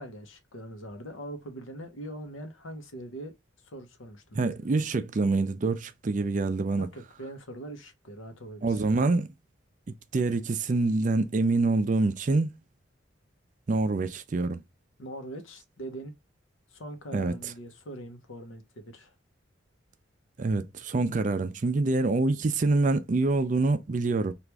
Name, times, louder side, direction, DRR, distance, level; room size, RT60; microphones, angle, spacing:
voice 1, 0.0-3.3 3.6-4.5 6.8-8.8 15.0-16.1 16.7-19.1, right 1 dB, 85° left, 0.9 m, -42 dB
voice 2, 4.3-6.9 8.6-9.3 10.1-12.5 13.7-14.6 17.1-17.3 20.4-24.3, right 3 dB, 40° right, 0.4 m, -26 dB
3.0 x 2.5 x 3.4 m
head